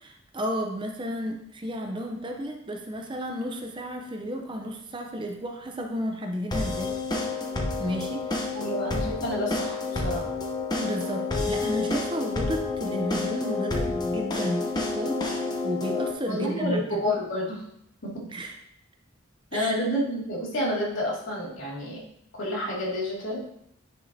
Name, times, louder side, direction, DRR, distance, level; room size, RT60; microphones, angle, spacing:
voice 1, 0.0-7.5 7.8-8.5 10.8-17.2 18.3-18.6 19.5-19.8, equal, 25° right, 3 dB, 0.7 m, -32 dB
sound 1, 6.5-16.1, left 3 dB, 20° left, 0.8 m, -29 dB
voice 2, 8.5-10.3 16.3-17.6 18.0-18.3 19.5-22.0 22.4-23.4, left 1 dB, 70° left, -4 dB, 2.5 m, -29 dB
9.7 x 5.5 x 2.8 m, 0.74 s
head